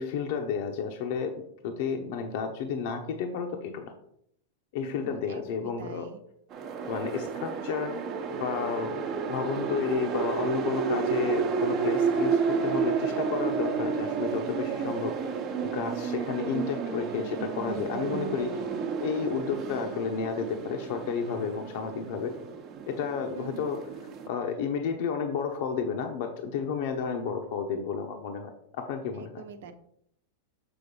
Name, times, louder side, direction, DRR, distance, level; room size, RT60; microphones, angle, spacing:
voice 1, 0.0-1.3 1.6-3.9 4.7-6.1 6.9-7.9 8.3-15.1 15.7-18.6 19.0-22.3 22.9-23.8 24.3-29.3, left 6 dB, 60° left, 4 dB, 0.9 m, -31 dB
voice 2, 4.8-6.2 10.8-11.2 15.5-15.9 20.2-20.5 23.3-23.7 27.2-27.3 29.2-29.7, right 6 dB, 70° right, 8 dB, 1.0 m, -42 dB
sound 1, 6.5-24.3, right 6 dB, 35° right, 1.0 m, -31 dB
7.0 x 3.8 x 5.3 m, 0.72 s
supercardioid pair, 135°, 0 cm